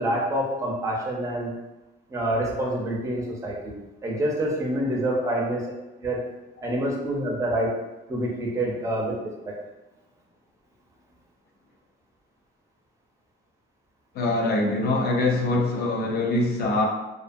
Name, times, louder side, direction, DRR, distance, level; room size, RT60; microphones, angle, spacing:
voice 1, 0.0-1.5 2.1-5.7 6.0-6.2 6.6-7.7 8.1-9.1 9.5-9.6, right 1 dB, 15° right, -3 dB, 0.4 m, -27 dB
voice 2, 14.1-16.8, left 2 dB, 50° left, 0 dB, 0.5 m, -24 dB
2.3 x 2.3 x 2.5 m, 1.0 s
cardioid pair, 165°, 21 cm